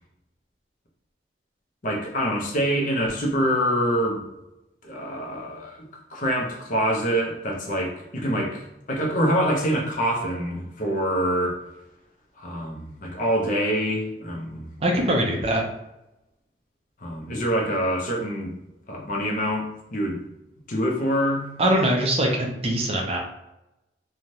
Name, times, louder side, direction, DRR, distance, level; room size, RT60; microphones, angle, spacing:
voice 1, 1.8-4.2 4.8-5.8 6.1-11.6 12.4-14.7 17.0-18.5 18.9-20.2 20.7-21.5, equal, 45° left, -1 dB, 0.7 m, -25 dB
voice 2, 14.8-15.6 21.6-23.2, right 1 dB, 35° right, 0 dB, 0.5 m, -22 dB
3.1 x 2.3 x 2.7 m, 0.91 s
head